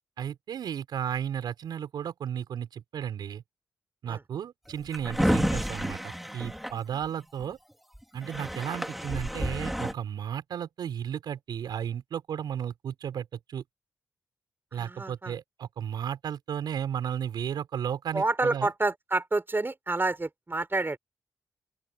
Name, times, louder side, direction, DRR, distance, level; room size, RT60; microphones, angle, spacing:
voice 1, 0.2-3.4 4.0-7.6 8.1-13.6 14.7-18.7, right 9 dB, 75° right, 6.1 m, -34 dB
Drawer open or close, 4.7-7.4 7.9-8.0 8.2-9.9, equal, ahead, 3.9 m, -30 dB
voice 2, 14.7-15.3 18.1-21.0, right 2 dB, 30° right, 6.6 m, -28 dB
open air
supercardioid pair, 40°, 7 cm